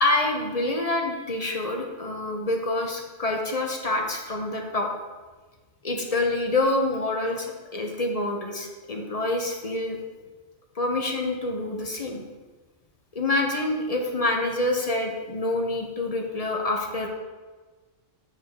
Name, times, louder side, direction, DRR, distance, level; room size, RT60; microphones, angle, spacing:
voice 1, 0.0-4.9 5.8-10.0 10.8-12.2 13.1-17.1, left 2 dB, 40° left, 2 dB, 0.7 m, -27 dB
9.1 x 4.6 x 3.6 m, 1.3 s
omnidirectional pair, 1.3 m